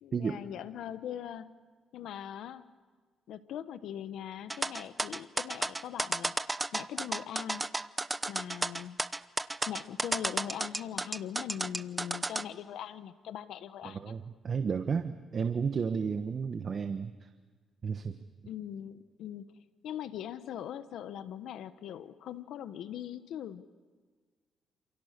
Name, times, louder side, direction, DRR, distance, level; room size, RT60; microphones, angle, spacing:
voice 1, 0.0-1.5 1.9-2.7 3.3-6.4 6.7-7.6 8.3-9.0 9.7-14.1 18.4-19.5 19.8-23.6, left 10 dB, 80° left, 12 dB, 1.2 m, -41 dB
sound 1, 4.5-12.4, right 2 dB, 15° right, 0.8 m, -33 dB
voice 2, 13.8-17.3 17.8-18.2, right 6 dB, 45° right, 8 dB, 1.2 m, -32 dB
28.5 x 28.0 x 6.8 m, 1.5 s
cardioid pair, 90°, 0 cm